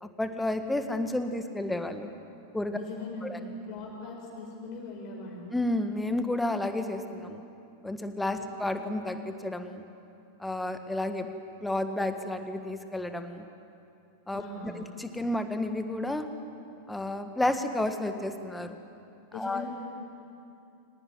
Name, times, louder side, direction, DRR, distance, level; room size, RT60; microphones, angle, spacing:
voice 1, 0.0-2.1 2.5-2.8 3.2-3.4 5.5-7.4 7.8-9.8 10.4-11.3 11.6-13.4 14.3-16.3 16.9-18.8 19.3-19.7, left 1 dB, 5° left, 8 dB, 1.7 m, -31 dB
voice 2, 2.7-5.5 8.3-8.5 14.3-14.8 19.3-19.7, left 2 dB, 40° left, -2 dB, 7.5 m, -40 dB
24.5 x 19.0 x 9.5 m, 2.7 s
figure-of-eight pair, 90°, 0 cm